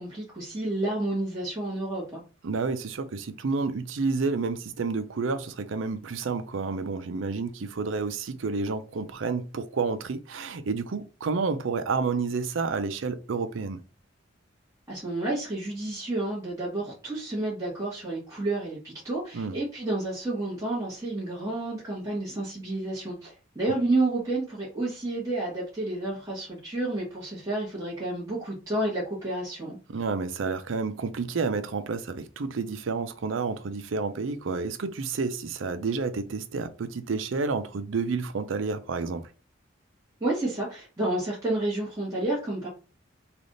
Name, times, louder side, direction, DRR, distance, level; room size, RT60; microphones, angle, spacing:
voice 1, 0.0-2.2 14.9-29.8 40.2-42.7, right 2 dB, 15° right, 1.3 m, -30 dB
voice 2, 2.4-13.8 19.3-19.5 29.9-39.2, right 4 dB, 75° right, 0.5 m, -30 dB
3.4 x 2.4 x 3.8 m
head